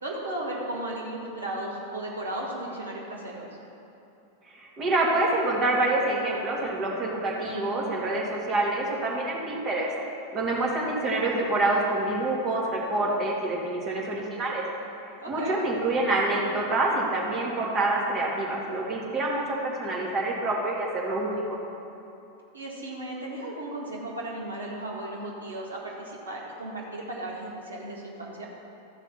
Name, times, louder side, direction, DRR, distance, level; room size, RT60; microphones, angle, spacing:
voice 1, 0.0-3.5 15.2-15.6 22.5-28.5, right 1 dB, 75° right, -3 dB, 2.0 m, -35 dB
voice 2, 4.5-9.9 10.3-14.6 15.3-21.6, right 2 dB, 30° right, -4 dB, 2.3 m, -27 dB
13.5 x 5.8 x 5.8 m, 2.9 s
figure-of-eight pair, 90°, 0 cm